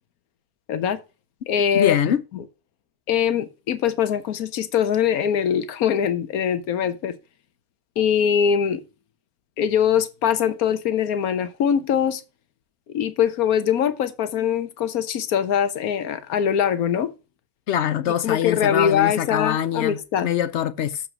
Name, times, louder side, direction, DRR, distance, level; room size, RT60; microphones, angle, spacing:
voice 1, 0.7-1.0 1.5-2.4 3.1-7.2 8.0-8.8 9.6-12.2 12.9-17.1 18.2-20.3, left 8 dB, 75° left, 1.4 m, -22 dB
voice 2, 1.7-2.2 17.7-21.0, left 10 dB, 60° left, 0.8 m, -23 dB
7.0 x 5.6 x 6.0 m
omnidirectional pair, 1.6 m